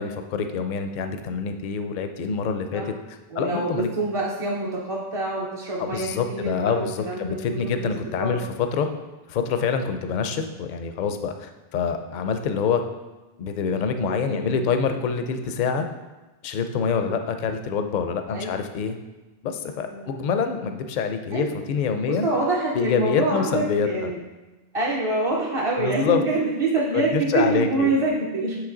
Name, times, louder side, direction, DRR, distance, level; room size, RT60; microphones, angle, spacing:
voice 1, 0.0-3.9 5.8-8.9 9.3-12.8 13.4-15.8 16.4-19.0 19.4-22.3 22.7-24.1 25.8-26.2 26.9-27.9, left 6 dB, 60° left, 7 dB, 0.6 m, -26 dB
voice 2, 3.3-8.4 10.2-10.4 14.0-14.6 15.5-15.6 17.0-17.2 18.3-18.5 19.9-20.3 21.3-21.5 22.1-24.2 24.7-28.6, right 2 dB, 40° right, -4 dB, 0.6 m, -26 dB
7.9 x 3.1 x 3.8 m, 1.1 s
omnidirectional pair, 1.1 m